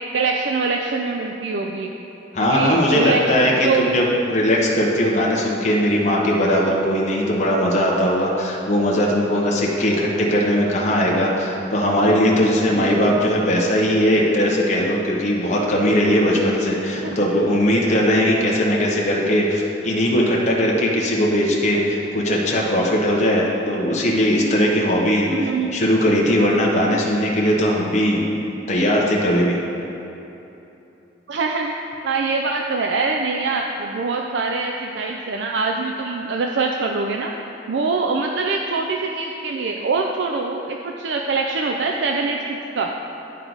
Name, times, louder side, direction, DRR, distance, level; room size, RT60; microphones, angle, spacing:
voice 1, 0.1-1.9 2.4-3.2 3.5-3.9 17.0-17.2 25.3-25.7 31.3-31.7 32.0-37.3 37.7-42.9, right 4 dB, 75° right, 2 dB, 0.4 m, -24 dB
voice 2, 2.3-28.3 28.7-29.6, equal, 40° left, -3 dB, 0.9 m, -19 dB
sound 1, 12.6-13.7 14.3-15.0 15.3-15.4 15.9-16.0 16.2-18.1 18.5-18.6, left 2 dB, 80° left, 0.6 m, -37 dB
10.5 x 4.6 x 4.0 m, 3.0 s
head